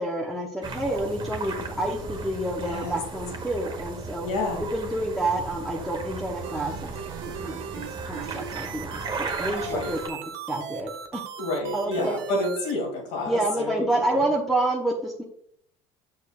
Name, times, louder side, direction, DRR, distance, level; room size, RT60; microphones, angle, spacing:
voice 1, 0.0-4.3 4.6-6.7 7.4-10.2 10.5-11.2 11.7-12.1 13.3-15.2, right 1 dB, ahead, -3 dB, 1.0 m, -28 dB
sound 1, 0.6-10.1, right 3 dB, 30° right, 1.3 m, -36 dB
voice 2, 2.6-3.0 4.2-4.6 9.7-9.9 11.4-13.9 14.1-14.2, left 2 dB, 80° left, 0 dB, 2.8 m, -29 dB
sound 2, 6.4-12.7, right 8 dB, 80° right, 0.8 m, -38 dB
6.6 x 6.6 x 2.5 m, 0.67 s
supercardioid pair, 85°, 14 cm